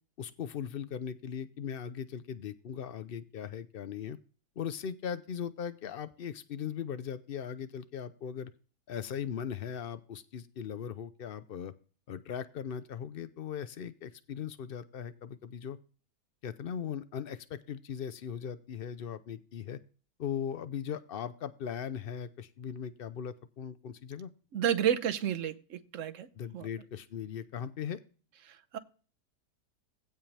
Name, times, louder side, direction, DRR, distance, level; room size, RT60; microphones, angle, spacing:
voice 1, 0.2-4.2 4.6-8.5 8.9-11.7 12.1-15.8 16.4-19.8 20.2-24.3 26.4-28.0, left 8 dB, 90° left, 13 dB, 0.5 m, -39 dB
voice 2, 24.5-26.3 26.5-26.7 28.5-28.8, right 9 dB, 55° right, 12 dB, 1.1 m, -31 dB
16.0 x 5.6 x 3.3 m, 0.36 s
omnidirectional pair, 1.8 m